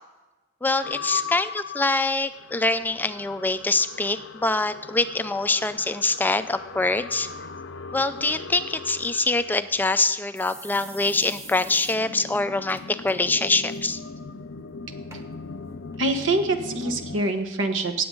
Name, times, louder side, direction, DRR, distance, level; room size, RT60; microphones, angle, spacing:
voice 1, 0.6-7.3 7.9-14.0, left 2 dB, 10° left, 11 dB, 0.3 m, -24 dB
sound 1, 0.8-17.2, left 5 dB, 70° left, 0.6 m, -39 dB
sound 2, 9.4-9.5 9.8-9.9 10.3-12.0 12.3-12.4 12.7-13.1 13.5-13.8 14.5-14.6 15.1-15.2 15.9-16.0, right 1 dB, 15° right, 1.2 m, -44 dB
voice 2, 16.0-18.0, right 2 dB, 75° right, 6 dB, 1.2 m, -25 dB
18.0 x 7.9 x 3.8 m, 1.1 s
head